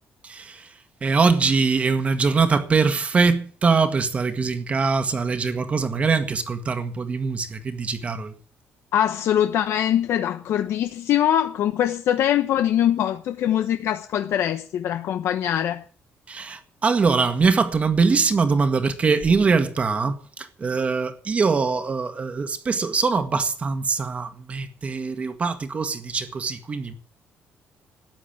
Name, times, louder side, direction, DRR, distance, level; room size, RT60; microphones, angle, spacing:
voice 1, 0.2-0.7 1.0-8.3 16.3-26.9, right 4 dB, 30° right, 1.7 m, -22 dB
voice 2, 8.9-15.8, left 10 dB, 70° left, 1.0 m, -22 dB
13.5 x 9.8 x 8.7 m
cardioid pair, 155°, 5 cm